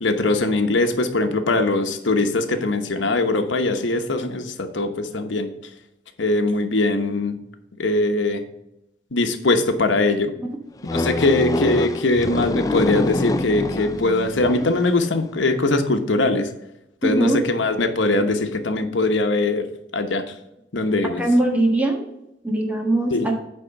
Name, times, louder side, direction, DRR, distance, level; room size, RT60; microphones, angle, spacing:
voice 1, 0.0-5.5 6.2-7.3 7.8-8.4 9.1-10.3 10.9-16.5 17.0-19.6 19.9-20.2 20.7-21.2 23.1-23.3, left 2 dB, 90° left, 7 dB, 1.0 m, -21 dB
sound 1, 10.9-14.9, left 2 dB, 20° left, 0.3 m, -25 dB
voice 2, 17.0-17.4 21.2-22.0 22.4-23.3, right 1 dB, 10° right, 1 dB, 1.4 m, -20 dB
9.1 x 3.8 x 5.8 m, 0.86 s
head